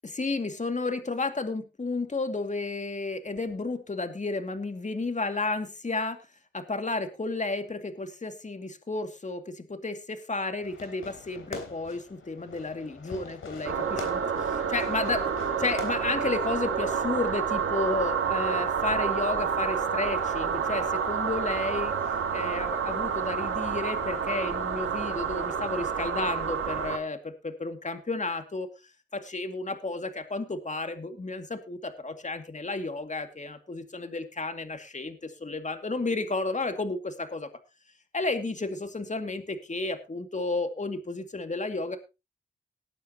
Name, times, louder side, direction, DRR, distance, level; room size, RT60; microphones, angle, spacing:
voice 1, 0.1-6.2 6.5-15.2 15.6-21.9 22.3-28.7 29.1-37.5 38.1-42.0, left 3 dB, 35° left, 7 dB, 2.3 m, -32 dB
Fireworks, 10.6-16.6, left 4 dB, 80° left, 3.6 m, -43 dB
sound 1, 13.6-27.0, right 6 dB, 90° right, 1.8 m, -29 dB
19.5 x 9.2 x 2.9 m, 0.27 s
cardioid pair, 60°, 21 cm